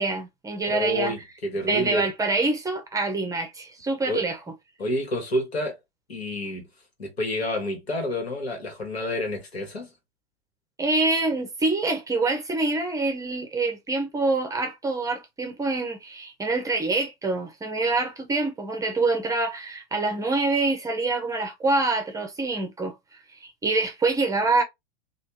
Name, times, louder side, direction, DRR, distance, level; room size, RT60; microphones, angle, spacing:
voice 1, 0.0-1.1 1.7-4.4 10.8-22.9 23.4-24.6, right 3 dB, 10° right, 0.6 m, -26 dB
voice 2, 0.6-2.1 4.1-4.2 4.8-5.8 6.1-6.7 7.0-9.9, left 1 dB, 80° left, 1.4 m, -29 dB
3.2 x 2.4 x 2.8 m
figure-of-eight pair, 95°, 31 cm